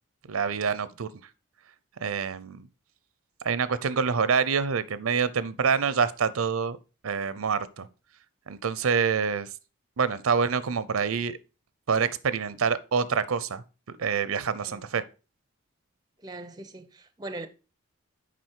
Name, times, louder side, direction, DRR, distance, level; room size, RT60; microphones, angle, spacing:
voice 1, 0.3-1.1 2.0-2.7 3.4-6.8 7.0-7.9 8.5-9.5 10.0-11.4 11.9-13.6 14.0-15.0, right 6 dB, 90° right, 0.6 m, -26 dB
voice 2, 16.2-17.5, right 2 dB, 20° right, 0.5 m, -40 dB
7.6 x 5.2 x 4.5 m
head